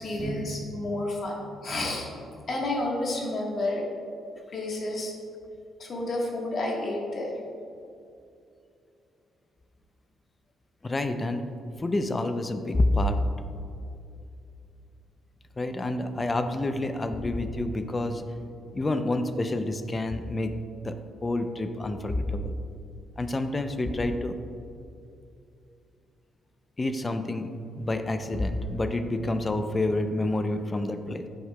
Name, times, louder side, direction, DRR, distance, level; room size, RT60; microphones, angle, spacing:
voice 1, 0.0-2.1 2.5-3.9 4.5-5.1 5.8-7.3, left 1 dB, 50° left, -1 dB, 1.3 m, -30 dB
voice 2, 10.8-11.4 11.8-13.2 15.6-18.2 18.7-20.5 20.8-20.9 21.2-22.5 23.2-24.3 26.8-27.5 27.7-31.3, left 2 dB, 25° left, 9 dB, 0.4 m, -28 dB
8.5 x 5.5 x 2.2 m, 2.6 s
cardioid pair, 90°, 0 cm